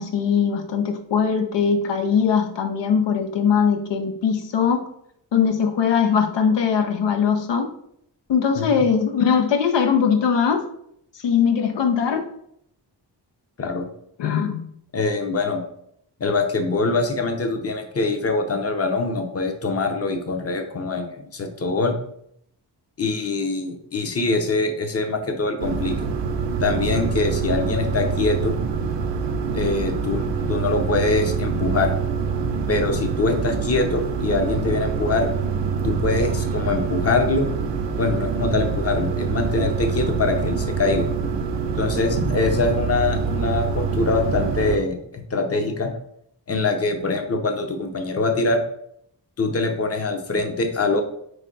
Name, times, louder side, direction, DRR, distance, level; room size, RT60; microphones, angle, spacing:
voice 1, 0.0-4.9 5.3-7.7 8.3-10.7 11.2-12.3 14.2-14.6, left 6 dB, 75° left, 6 dB, 0.5 m, -20 dB
voice 2, 14.9-15.6 16.2-22.0 23.0-26.0 26.6-28.6 29.5-31.9 32.7-35.3 35.8-37.5 38.0-41.1 41.8-45.9 46.5-48.6 49.4-51.0, left 3 dB, 35° left, 4 dB, 0.7 m, -23 dB
sound 1, 25.6-44.8, right 5 dB, 75° right, 0.6 m, -25 dB
4.8 x 2.2 x 3.8 m, 0.70 s
wide cardioid pair, 80°, 43 cm